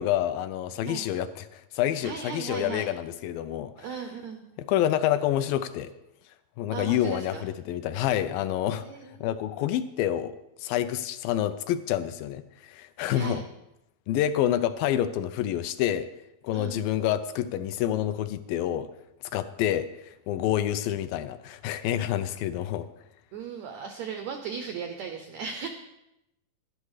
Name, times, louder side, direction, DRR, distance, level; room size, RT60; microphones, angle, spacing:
voice 1, 0.0-3.7 4.6-5.9 6.6-8.9 9.2-13.4 14.1-16.1 16.4-18.9 19.3-22.9, left 11 dB, 80° left, 11 dB, 2.2 m, -28 dB
voice 2, 2.0-2.9 3.8-4.4 6.7-7.4 8.8-9.1 13.1-13.5 16.5-16.9 23.3-25.7, right 6 dB, 90° right, 6 dB, 1.5 m, -37 dB
11.0 x 10.5 x 4.8 m, 0.88 s
omnidirectional pair, 4.2 m